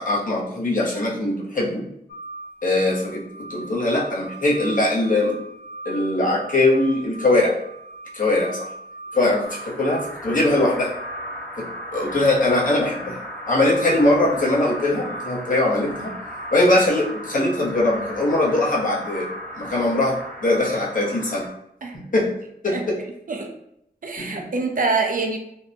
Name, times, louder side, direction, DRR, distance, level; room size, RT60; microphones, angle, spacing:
voice 1, 0.0-1.9 2.6-5.4 5.9-7.6 8.1-8.6 9.1-10.9 11.6-13.2 13.5-16.1 16.5-19.3 19.6-21.5 21.9-22.3 22.6-22.8 24.2-24.5, left 2 dB, 55° left, -5 dB, 0.8 m, -21 dB
sound 1, 2.1-21.5, right 2 dB, 75° left, 0.4 m, -39 dB
sound 2, 9.4-21.5, left 1 dB, 10° left, 0.7 m, -37 dB
voice 2, 24.0-25.4, right 3 dB, 55° right, 1 dB, 0.5 m, -24 dB
2.7 x 2.1 x 2.6 m, 0.75 s
wide cardioid pair, 60°, 17 cm